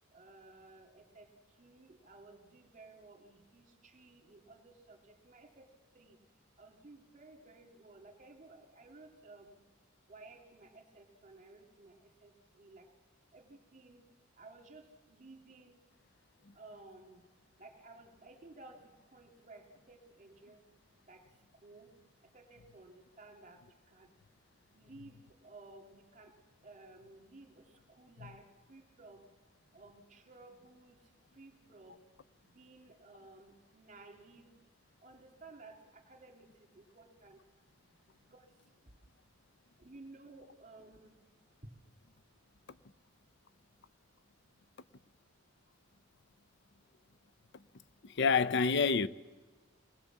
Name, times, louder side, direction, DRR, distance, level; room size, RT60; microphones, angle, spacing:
voice 1, 0.1-1.3 1.6-5.7 5.9-6.2 6.6-9.5 10.1-12.9 13.3-14.0 14.4-15.8 16.5-17.2 17.6-20.6 21.1-21.2 21.6-21.9 22.2-23.6 23.9-24.1 24.7-26.3 26.6-29.2 29.7-31.0 31.3-32.0 32.4-34.5 35.0-37.4 38.3-38.5 39.8-41.1, right 2 dB, 40° right, 2.7 m, -56 dB
voice 2, 48.0-49.1, left 5 dB, 60° left, 0.6 m, -28 dB
25.0 x 20.0 x 7.4 m
head